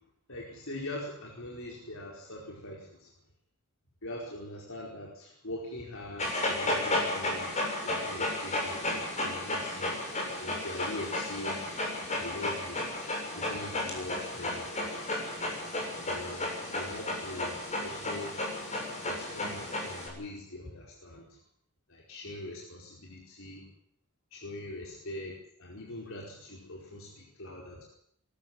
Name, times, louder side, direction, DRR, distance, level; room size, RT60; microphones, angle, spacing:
voice 1, 0.3-3.1 4.0-9.9 10.4-11.6 12.1-12.8 13.3-14.9 16.1-18.5 19.0-21.4 21.9-23.7 24.3-27.9, left 1 dB, 60° left, -1 dB, 4.8 m, -42 dB
Dog, 6.2-20.1, left 1 dB, 30° left, 6.9 m, -33 dB
22.5 x 14.0 x 9.5 m, 0.71 s
head